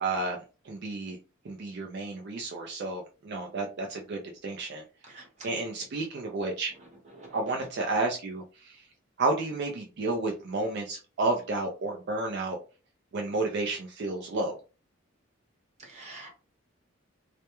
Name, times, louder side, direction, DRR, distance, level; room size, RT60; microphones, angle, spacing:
voice 1, 0.0-0.4 0.6-1.2 1.4-4.8 5.4-6.7 7.3-8.9 9.2-12.6 13.1-14.5, right 2 dB, 50° right, 1 dB, 0.4 m, -31 dB
voice 2, 5.1-5.5 7.2-7.4 15.8-16.3, right 2 dB, 35° right, -1 dB, 0.9 m, -46 dB
2.2 x 2.1 x 2.9 m, 0.34 s
head